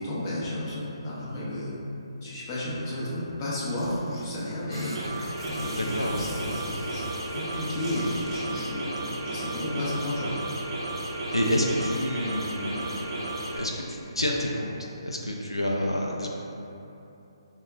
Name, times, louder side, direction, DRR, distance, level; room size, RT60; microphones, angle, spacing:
voice 1, 0.0-1.7 2.2-5.0 5.4-8.9 9.2-10.3, left 1 dB, 25° left, -8 dB, 0.8 m, -32 dB
Zipper (clothing), 3.8-8.4, equal, 10° right, 0.7 m, -43 dB
sound 1, 4.7-13.6, right 1 dB, 70° right, 0.6 m, -34 dB
voice 2, 5.7-6.3 11.3-16.3, equal, 85° left, -2 dB, 0.4 m, -29 dB
5.4 x 2.3 x 2.3 m, 2.9 s
figure-of-eight pair, 140°, 3 cm